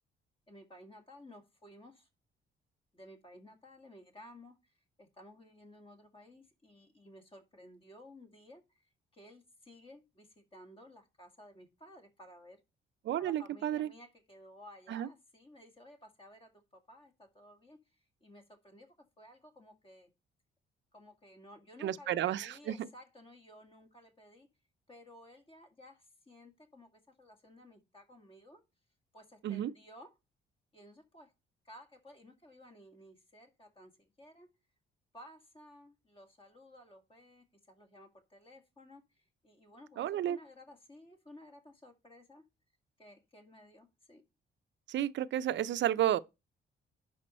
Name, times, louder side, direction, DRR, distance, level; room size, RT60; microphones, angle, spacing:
voice 1, 0.5-2.1 2.9-12.6 13.2-17.8 18.2-20.1 20.9-24.5 24.9-28.6 29.1-30.1 30.7-31.3 31.6-34.5 35.1-42.4 43.0-44.2, left 1 dB, 25° left, 2.1 m, -56 dB
voice 2, 13.0-13.9 14.9-15.1 21.8-22.7 29.4-29.7 40.0-40.4 44.9-46.2, right 12 dB, 65° right, 0.6 m, -32 dB
10.5 x 5.1 x 4.3 m
cardioid pair, 90°, 20 cm